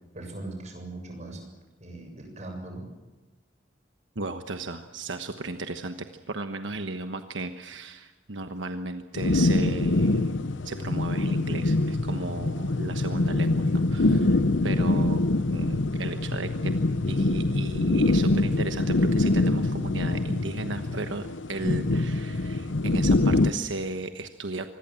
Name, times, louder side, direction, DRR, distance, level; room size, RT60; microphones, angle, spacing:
voice 1, 0.1-1.4 1.8-2.9, right 2 dB, 40° right, 3 dB, 7.3 m, -39 dB
voice 2, 4.1-5.9 6.3-15.2 15.5-16.7 17.1-24.7, right 3 dB, 80° right, 7 dB, 1.2 m, -35 dB
sound 1, 9.2-23.5, left 2 dB, 85° left, 0.9 m, -24 dB
25.5 x 21.0 x 7.6 m, 1.1 s
head